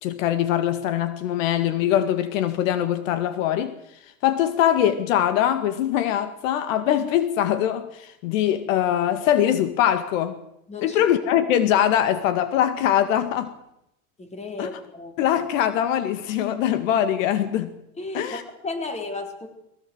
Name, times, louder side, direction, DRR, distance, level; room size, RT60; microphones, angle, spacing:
voice 1, 0.0-3.8 4.2-10.4 10.8-13.5 14.6-14.8 15.2-17.7 18.1-18.4, left 10 dB, 65° left, 2.0 m, -22 dB
voice 2, 14.2-15.1 18.0-19.5, left 2 dB, 15° left, 4.0 m, -34 dB
21.5 x 17.5 x 7.9 m
supercardioid pair, 130°, 42 cm